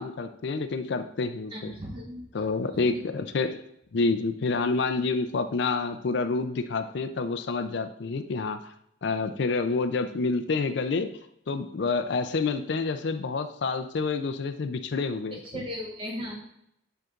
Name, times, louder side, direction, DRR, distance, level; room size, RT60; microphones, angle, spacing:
voice 1, 0.0-1.7 2.3-3.6 3.9-8.7 9.0-11.1 11.5-15.4, left 4 dB, 65° left, 9 dB, 0.4 m, -28 dB
voice 2, 1.5-2.5 2.9-3.0 15.3-16.3, equal, 25° right, 0 dB, 1.2 m, -37 dB
7.9 x 5.8 x 2.4 m, 0.76 s
head